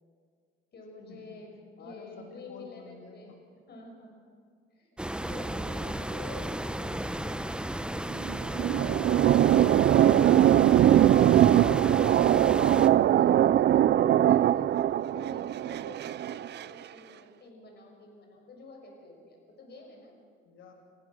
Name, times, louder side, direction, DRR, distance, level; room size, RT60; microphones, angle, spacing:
voice 1, 0.7-3.3 3.7-4.2 4.7-8.0 9.4-10.5 11.5-20.2, left 2 dB, 55° left, 1 dB, 6.4 m, -49 dB
voice 2, 1.8-3.4 20.4-20.7, left 4 dB, 85° left, 1 dB, 3.2 m, -50 dB
sound 1, 5.0-12.9, right 1 dB, 5° right, 0.9 m, -34 dB
sound 2, 8.1-16.7, right 11 dB, 60° right, 0.5 m, -22 dB
29.0 x 15.5 x 6.3 m, 2.1 s
cardioid pair, 90°, 20 cm